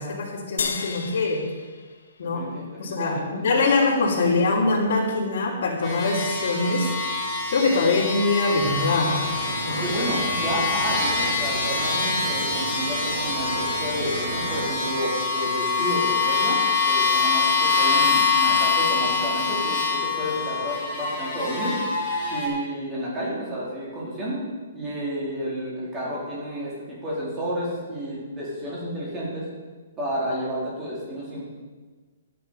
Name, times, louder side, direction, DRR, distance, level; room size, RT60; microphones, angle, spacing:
voice 1, 0.0-1.4 2.2-2.5 2.8-6.9 7.5-9.2 9.6-9.8, left 3 dB, 50° left, -8 dB, 3.1 m, -23 dB
sound 1, 0.6-3.2, left 5 dB, 85° left, 1.4 m, -34 dB
voice 2, 2.2-3.6 9.8-21.8 22.3-24.4 24.7-26.7 27.0-29.5 30.0-31.4, equal, 15° right, -6 dB, 3.8 m, -31 dB
sound 2, 5.8-22.5, left 4 dB, 10° left, 4.1 m, -25 dB
sound 3, 8.6-14.7, right 2 dB, 70° right, 2.2 m, -33 dB
12.5 x 9.8 x 5.6 m, 1.4 s
hypercardioid pair, 170°, 0 cm